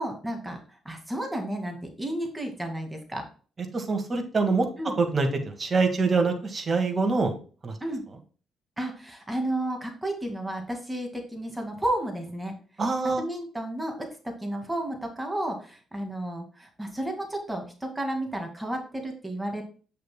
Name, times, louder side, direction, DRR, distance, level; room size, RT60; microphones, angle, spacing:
voice 1, 0.0-3.2 4.8-5.0 7.8-8.0 8.8-12.5 13.0-19.6, right 1 dB, 10° right, 3 dB, 2.0 m, -32 dB
voice 2, 3.7-4.7 5.0-7.4 7.6-7.8 12.8-13.2, right 4 dB, 35° right, 4 dB, 1.8 m, -25 dB
8.1 x 6.6 x 2.2 m, 0.39 s
cardioid pair, 90°, 0 cm